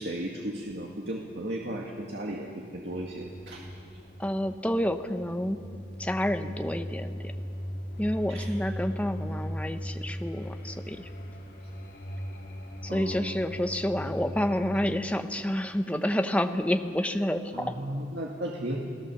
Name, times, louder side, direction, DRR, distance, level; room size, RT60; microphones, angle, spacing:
voice 1, 0.0-3.6 8.3-8.5 12.8-13.3 17.5-18.8, right 1 dB, 70° right, -1 dB, 2.1 m, -35 dB
sound 1, 2.9-15.0, equal, 70° left, 3.7 m, -38 dB
voice 2, 4.2-5.6 6.0-7.3 8.0-11.1 12.8-17.7, equal, 10° left, 7 dB, 1.0 m, -29 dB
29.5 x 18.0 x 7.2 m, 2.4 s
head